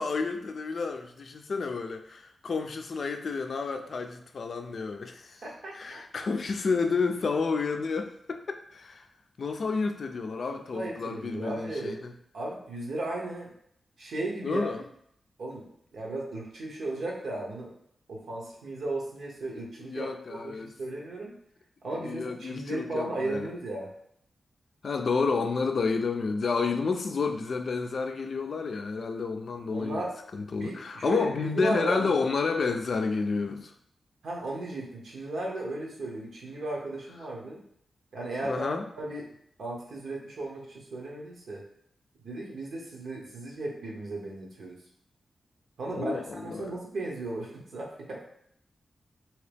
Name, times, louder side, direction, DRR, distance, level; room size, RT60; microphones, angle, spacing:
voice 1, 0.0-5.4 5.7-9.0 9.4-12.1 14.4-14.8 19.8-20.7 21.9-23.5 24.8-30.0 30.3-33.7 38.4-38.8 45.9-46.7, left 4 dB, 65° left, 5 dB, 0.4 m, -30 dB
voice 2, 5.4-6.2 10.7-12.0 12.3-13.5 14.0-14.7 15.4-17.7 18.1-21.3 21.8-23.9 29.7-30.1 30.6-32.2 34.2-37.6 38.1-38.7 39.0-39.3 39.6-41.6 42.2-44.8 45.8-48.2, right 2 dB, 80° right, -2 dB, 0.9 m, -35 dB
2.9 x 2.8 x 3.3 m, 0.70 s
cardioid pair, 65°, 0 cm